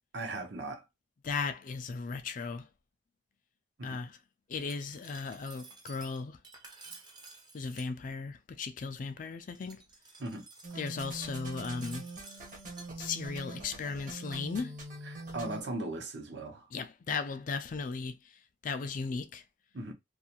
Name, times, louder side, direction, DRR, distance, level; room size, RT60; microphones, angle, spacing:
voice 1, 0.1-0.8 3.8-4.0 10.2-10.4 15.0-16.7 19.7-19.9, right 2 dB, 70° right, 0.8 m, -38 dB
voice 2, 1.2-2.7 3.8-4.2 4.5-6.4 7.5-9.8 10.8-12.1 13.0-14.8 16.7-18.2 18.6-19.4, left 4 dB, 45° left, 0.4 m, -36 dB
Glass, 4.5-7.9 9.5-12.9, right 3 dB, 25° right, 0.6 m, -53 dB
sound 1, 10.6-15.6, right 2 dB, 45° right, 0.9 m, -43 dB
2.5 x 2.4 x 2.8 m
head